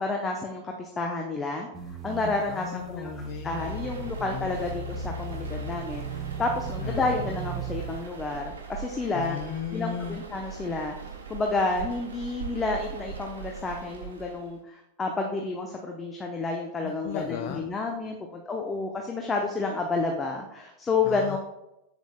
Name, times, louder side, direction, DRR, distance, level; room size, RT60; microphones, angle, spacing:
voice 1, 0.0-1.7 2.0-3.1 3.4-9.4 9.7-11.0 11.3-21.4, left 3 dB, 15° left, 1 dB, 0.8 m, -30 dB
sound 1, 1.7-8.2, right 3 dB, 30° right, 1.5 m, -36 dB
voice 2, 2.5-4.6 6.8-7.2 9.1-10.2 16.8-17.6 21.1-21.4, left 9 dB, 45° left, 6 dB, 0.5 m, -36 dB
sound 2, 3.6-14.6, right 6 dB, 70° right, 1.4 m, -41 dB
7.5 x 7.1 x 2.3 m, 0.85 s
figure-of-eight pair, 90°, 0 cm